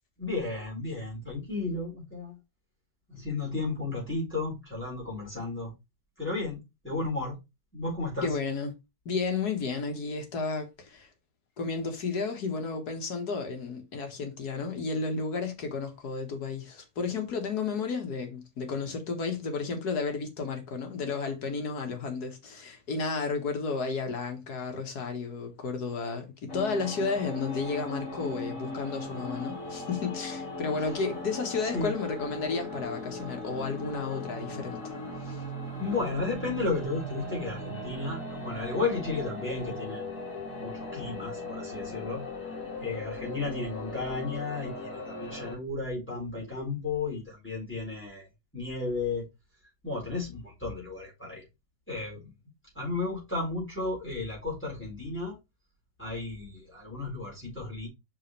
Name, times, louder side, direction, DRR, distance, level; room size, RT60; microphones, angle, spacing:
voice 1, 0.2-2.4 3.1-5.7 6.2-7.4 7.7-8.3 31.7-32.0 35.8-40.0 40.4-42.2 42.8-48.2 48.5-49.3 49.8-51.4 51.9-52.2 52.7-55.4 56.0-57.9, left 3 dB, 5° left, 4.4 m, -33 dB
voice 2, 8.2-8.7 9.1-11.1 11.6-34.9 35.2-35.4, left 4 dB, 85° left, 1.9 m, -32 dB
sound 1, 26.5-45.6, left 1 dB, 60° left, 2.4 m, -38 dB
6.3 x 5.6 x 3.2 m
omnidirectional pair, 1.6 m